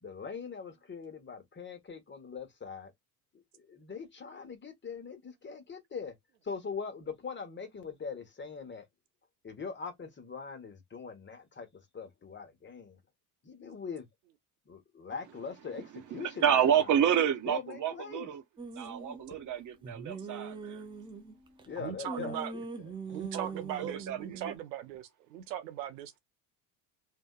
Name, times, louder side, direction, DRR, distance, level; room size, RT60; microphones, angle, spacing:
voice 1, 0.0-2.9 3.3-6.1 6.4-8.9 9.4-13.0 13.4-14.1 14.7-16.9 17.5-18.3 21.6-22.6, left 5 dB, 25° left, 0.9 m, -42 dB
voice 2, 16.1-18.4 18.8-20.8 23.3-23.5 23.8-24.4, right 9 dB, 40° right, 0.9 m, -29 dB
sound 1, 18.6-19.2 19.8-21.7 22.1-24.6, right 4 dB, 10° right, 0.3 m, -42 dB
voice 3, 21.8-22.5 23.1-26.2, right 10 dB, 85° right, 0.6 m, -39 dB
2.6 x 2.2 x 2.2 m
hypercardioid pair, 75°, 49 cm